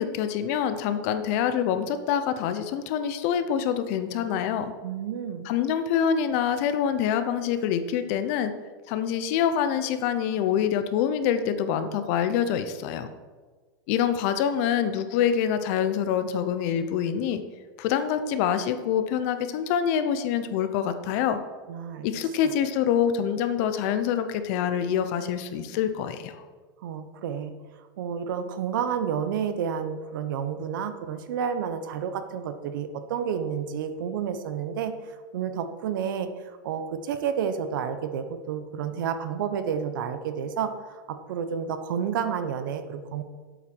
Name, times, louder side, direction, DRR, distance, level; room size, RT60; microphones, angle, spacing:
voice 1, 0.0-4.7 5.4-8.5 8.9-13.1 13.9-17.4 17.8-21.4 22.0-26.4, left 8 dB, 45° left, 10 dB, 0.8 m, -26 dB
voice 2, 4.8-5.5 21.7-22.1 26.8-27.5 28.0-43.2, right 7 dB, 70° right, 9 dB, 1.0 m, -30 dB
8.0 x 7.5 x 6.2 m, 1.4 s
supercardioid pair, 165°, 11 cm